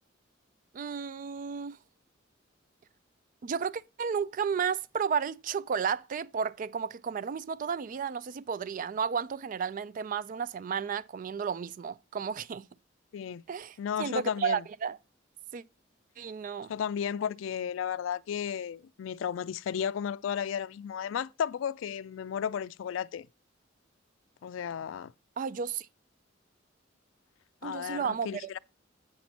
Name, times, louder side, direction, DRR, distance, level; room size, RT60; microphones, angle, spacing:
voice 1, 0.7-1.8 3.4-12.6 13.5-15.0 15.5-15.6 16.2-16.7 25.4-25.9 27.6-28.6, right 6 dB, 45° right, 0.3 m, -33 dB
voice 2, 13.1-13.4 13.8-14.6 16.7-23.3 24.4-25.1 27.6-28.6, left 8 dB, 80° left, 0.3 m, -34 dB
7.8 x 4.1 x 5.9 m
head